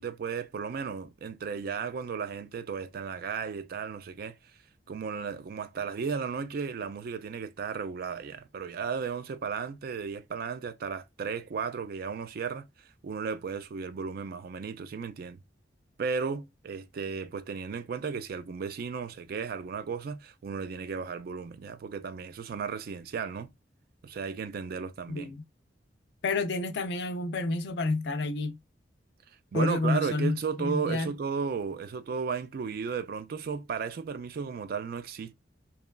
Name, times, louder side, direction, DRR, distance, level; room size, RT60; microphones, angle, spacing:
voice 1, 0.0-4.4 4.9-12.7 13.0-15.4 16.0-23.5 24.0-25.3 29.5-35.3, right 5 dB, 55° right, 0.3 m, -34 dB
voice 2, 25.1-25.4 26.2-28.6 29.5-31.1, left 3 dB, 65° left, 0.4 m, -29 dB
2.9 x 2.2 x 2.2 m
head